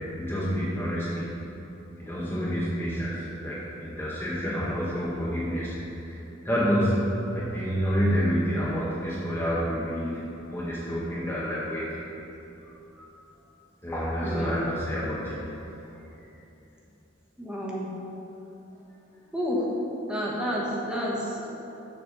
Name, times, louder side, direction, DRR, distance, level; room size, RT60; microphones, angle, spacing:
voice 1, 0.0-1.4 2.0-10.2 10.5-12.1 12.9-13.2 13.8-15.5, equal, 10° left, -8 dB, 0.9 m, -28 dB
voice 2, 14.2-14.6 17.4-17.9 19.3-19.6 20.1-21.5, equal, 5° right, -5 dB, 1.2 m, -30 dB
6.9 x 4.1 x 6.5 m, 3.0 s
head